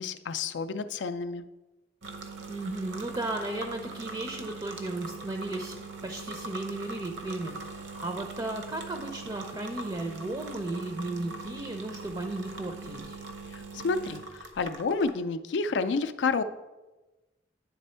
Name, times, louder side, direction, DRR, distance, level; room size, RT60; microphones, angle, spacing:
voice 1, 0.0-1.4 13.5-16.4, left 4 dB, 70° left, 12 dB, 0.4 m, -30 dB
sound 1, 2.0-15.1, right 3 dB, 75° right, 0.8 m, -41 dB
voice 2, 2.5-5.8 6.0-13.2, right 2 dB, 25° right, 4 dB, 0.5 m, -35 dB
9.4 x 3.4 x 4.3 m, 1.1 s
head